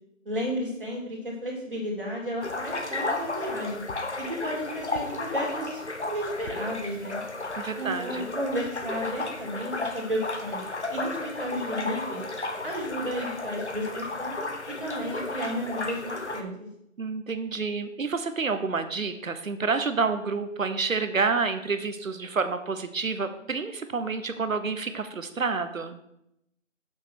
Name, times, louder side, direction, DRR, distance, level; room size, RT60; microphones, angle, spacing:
voice 1, 0.2-3.8 4.2-7.2 7.8-12.2 12.6-14.4 14.7-16.7, equal, 40° right, -2 dB, 2.9 m, -33 dB
sound 1, 2.4-16.4, left 2 dB, 60° left, 1.1 m, -33 dB
voice 2, 7.6-8.3 17.0-26.0, right 4 dB, 90° right, 9 dB, 1.0 m, -29 dB
6.9 x 5.7 x 6.2 m, 0.78 s
figure-of-eight pair, 180°, 39 cm